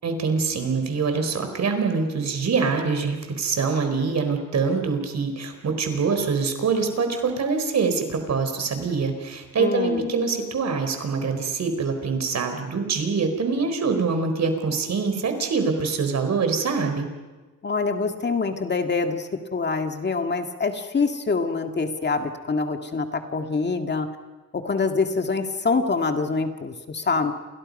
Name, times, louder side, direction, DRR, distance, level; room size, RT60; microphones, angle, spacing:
voice 1, 0.0-17.1, right 4 dB, 60° right, 6 dB, 4.4 m, -24 dB
voice 2, 9.6-10.1 17.6-24.1 24.5-27.3, left 4 dB, 35° left, 5 dB, 1.9 m, -25 dB
30.0 x 28.5 x 5.4 m, 1.3 s
wide cardioid pair, 130°, 31 cm